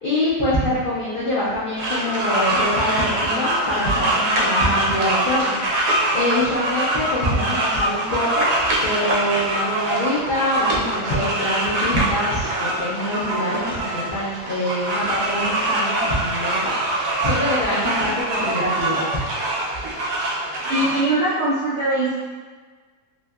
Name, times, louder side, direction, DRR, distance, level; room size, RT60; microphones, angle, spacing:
voice 1, 0.0-5.6 6.1-8.5 8.8-19.1, left 1 dB, 70° left, -9 dB, 0.5 m, -24 dB
sound 1, 1.8-21.0, right 1 dB, 90° right, 1.2 m, -23 dB
voice 2, 20.7-22.1, right 2 dB, 65° right, -10 dB, 0.6 m, -21 dB
3.0 x 2.6 x 2.2 m, 1.5 s
omnidirectional pair, 1.7 m